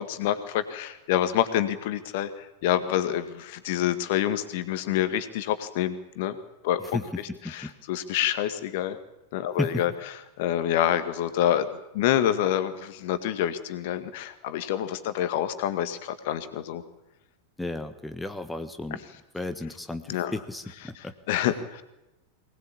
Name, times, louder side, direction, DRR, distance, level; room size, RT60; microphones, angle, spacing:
voice 1, 0.0-6.3 6.6-6.8 7.5-9.0 9.3-9.9 10.4-11.7 11.9-16.8 20.1-20.3 21.3-21.8, left 11 dB, 50° left, 10 dB, 2.0 m, -27 dB
voice 2, 6.9-7.7 9.6-9.8 17.6-19.0 19.3-21.1, left 2 dB, 5° left, 8 dB, 1.5 m, -34 dB
23.5 x 19.5 x 8.7 m, 0.97 s
figure-of-eight pair, 90°, 0 cm